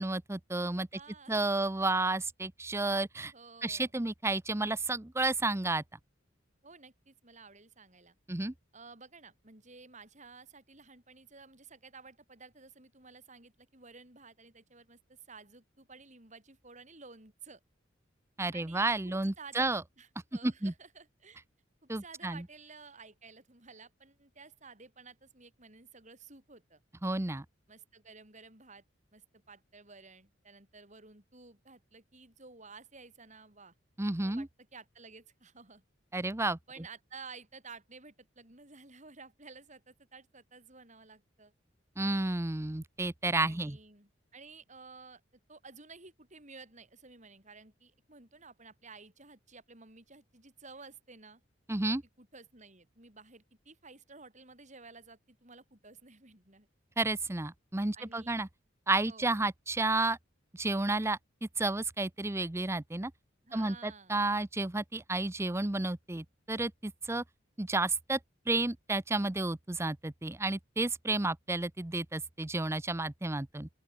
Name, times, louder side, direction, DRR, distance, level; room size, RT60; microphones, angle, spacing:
voice 1, 0.0-0.9 1.3-3.3 3.6-5.8 8.3-8.5 18.4-19.8 20.4-20.7 21.9-22.4 27.0-27.4 34.0-34.5 36.1-36.6 42.0-43.8 51.7-52.0 57.0-58.5 58.9-60.2 60.5-63.1 63.5-67.2 67.6-68.2 68.5-73.7, right 2 dB, 15° right, 0.6 m, -31 dB
voice 2, 0.9-1.7 3.3-3.9 6.6-8.2 8.7-17.6 18.5-21.4 21.8-26.8 27.7-28.8 29.1-33.7 34.2-35.8 36.7-41.5 43.4-45.2 45.5-51.4 52.2-56.7 57.9-58.4 59.0-59.3 63.4-64.1, right 4 dB, 40° right, 6.5 m, -53 dB
open air
head